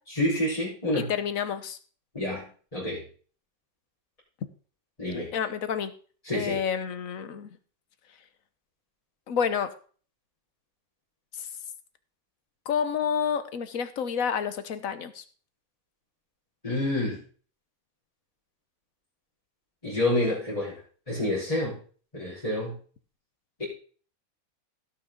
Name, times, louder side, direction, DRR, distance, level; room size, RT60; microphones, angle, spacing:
voice 1, 0.1-1.1 2.1-3.0 5.0-5.3 6.2-6.6 16.6-17.2 19.8-20.8 21.1-21.8 22.1-22.7, left 1 dB, 20° left, -10 dB, 4.3 m, -28 dB
voice 2, 1.0-1.8 5.3-5.9 6.3-7.6 9.3-9.7 12.7-15.2, left 7 dB, 70° left, 11 dB, 1.4 m, -29 dB
17.0 x 6.5 x 3.8 m, 0.41 s
omnidirectional pair, 1.5 m